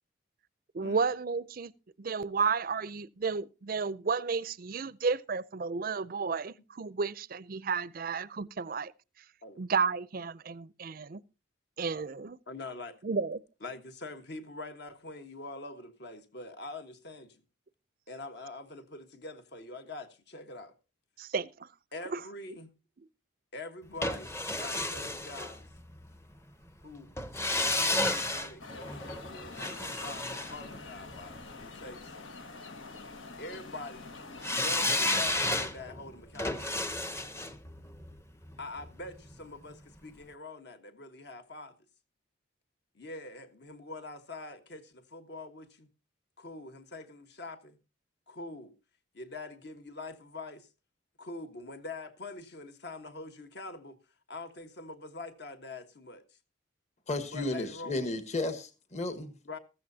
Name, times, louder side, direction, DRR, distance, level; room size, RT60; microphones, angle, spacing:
voice 1, 0.7-1.7 2.0-8.9 9.6-11.2 11.8-12.4 13.0-13.4 21.2-21.7 22.1-22.2, right 5 dB, 45° right, 0.5 m, -32 dB
voice 2, 12.5-13.0 13.6-17.4 18.1-20.7 21.9-22.7 23.5-25.6 26.8-32.4 33.4-34.1 34.5-36.7 38.6-41.7 42.9-45.9 46.4-47.8 48.3-48.7 49.1-50.7 51.2-54.0 54.3-56.2 57.3-58.1 59.4-59.6, left 2 dB, 55° left, 1.4 m, -44 dB
sound 1, 24.0-26.1 27.2-31.4 34.4-39.4 39.7-39.8, left 2 dB, 15° left, 0.7 m, -32 dB
sound 2, 28.6-35.1, left 4 dB, 85° left, 1.5 m, -46 dB
voice 3, 57.1-59.3, left 2 dB, 35° left, 1.3 m, -33 dB
15.0 x 14.0 x 2.8 m
head